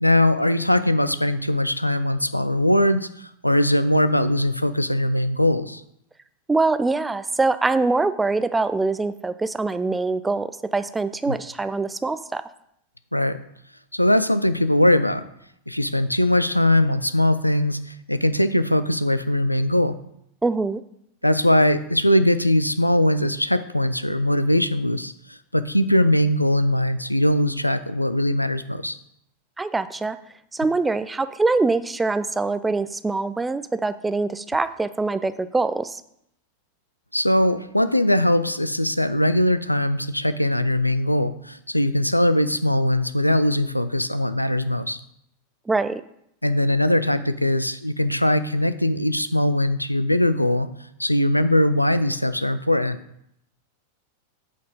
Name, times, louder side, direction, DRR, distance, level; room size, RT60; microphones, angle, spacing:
voice 1, 0.0-5.8 13.1-13.4 13.9-15.2 15.7-20.0 21.2-29.0 37.1-45.0 46.4-50.7 51.0-53.0, left 1 dB, 90° left, 13 dB, 0.4 m, -21 dB
voice 2, 6.5-12.4 20.4-20.8 29.6-30.2 30.5-36.0 45.7-46.0, right 3 dB, 10° right, 12 dB, 0.4 m, -23 dB
8.3 x 4.2 x 5.1 m, 0.75 s
figure-of-eight pair, 90°, 0 cm